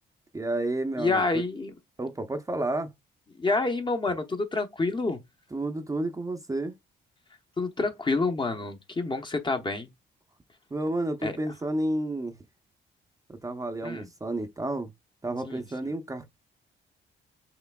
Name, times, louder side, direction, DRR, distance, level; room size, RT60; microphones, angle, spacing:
voice 1, 0.3-1.2 2.0-2.9 5.5-6.8 10.7-12.4 13.3-14.9 15.2-16.3, right 2 dB, 15° right, 0.7 m, -31 dB
voice 2, 1.0-1.7 3.3-5.2 7.3-9.9 11.2-11.5 13.8-14.1 15.4-15.9, left 3 dB, 25° left, 0.8 m, -28 dB
5.8 x 3.2 x 2.3 m
cardioid pair, 90°, 20 cm